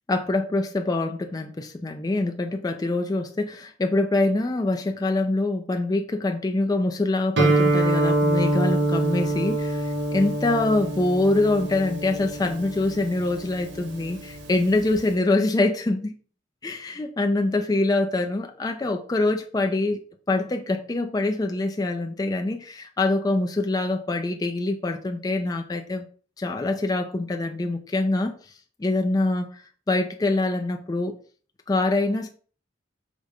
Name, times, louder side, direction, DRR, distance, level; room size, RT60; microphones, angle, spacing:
voice 1, 0.1-16.1 16.6-20.0 20.3-26.1 26.4-28.3 28.8-31.2 31.7-32.3, left 2 dB, 20° left, 4 dB, 0.3 m, -24 dB
Guitar, 7.4-15.1, right 2 dB, 60° right, 0.9 m, -25 dB
5.1 x 2.1 x 4.8 m, 0.42 s
head